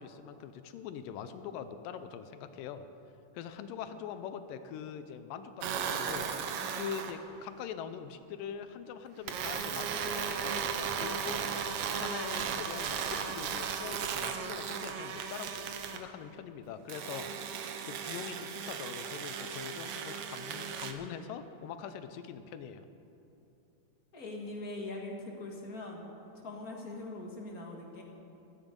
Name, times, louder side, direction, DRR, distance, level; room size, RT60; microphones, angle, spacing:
voice 1, 0.0-2.8 3.3-6.3 6.8-17.3 17.6-22.9, left 8 dB, 90° left, 10 dB, 2.4 m, -43 dB
sound 1, 5.6-7.2 9.3-16.0 16.9-20.9, right 7 dB, 70° right, 1.5 m, -36 dB
voice 2, 24.1-26.1 26.4-28.0, left 2 dB, 35° left, 0 dB, 1.6 m, -42 dB
16.0 x 14.5 x 5.3 m, 2.9 s
omnidirectional pair, 3.8 m